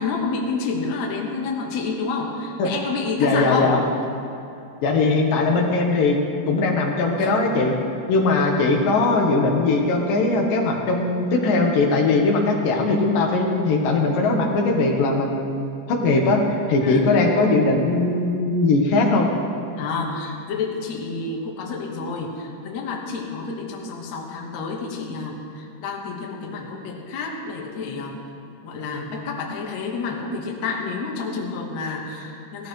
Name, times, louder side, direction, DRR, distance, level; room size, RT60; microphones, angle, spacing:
voice 1, 0.0-3.8 7.2-7.3 16.8-17.1 19.8-28.2 28.6-32.7, left 4 dB, 60° left, -1 dB, 2.4 m, -29 dB
voice 2, 3.2-3.8 4.8-6.2 6.5-7.7 8.1-19.3, left 3 dB, 80° left, 0 dB, 2.9 m, -20 dB
17.5 x 14.0 x 3.2 m, 2.7 s
omnidirectional pair, 3.9 m